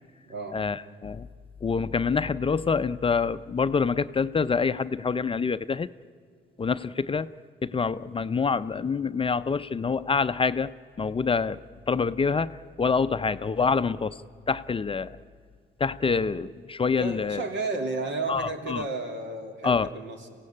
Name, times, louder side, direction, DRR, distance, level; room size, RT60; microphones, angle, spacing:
voice 1, 0.5-1.3 1.6-5.9 6.6-7.3 7.6-10.7 11.0-14.2 14.5-15.2 15.8-17.4 18.3-18.8 19.6-19.9, left 5 dB, 25° left, 12 dB, 0.5 m, -26 dB
voice 2, 17.0-20.3, right 3 dB, 65° right, 5 dB, 3.0 m, -32 dB
26.0 x 16.5 x 8.6 m, 2.1 s
cardioid pair, 90°, 20 cm